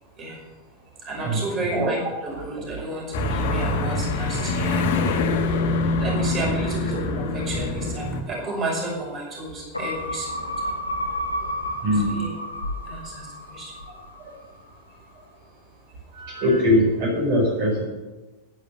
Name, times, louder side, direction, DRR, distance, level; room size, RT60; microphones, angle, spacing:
voice 1, 1.0-4.9 6.0-10.7 11.9-12.3 12.8-13.7 16.8-16.9, right 2 dB, 30° right, -2 dB, 5.6 m, -31 dB
sound 1, 3.1-8.2, left 3 dB, 50° left, 1.8 m, -24 dB
sound 2, 9.7-14.4 14.8-14.9, equal, 85° left, 1.5 m, -31 dB
voice 2, 11.8-12.2 16.1-17.8, left 1 dB, 45° right, -3 dB, 5.0 m, -21 dB
11.5 x 10.5 x 6.6 m, 1.1 s
figure-of-eight pair, 90°, 0 cm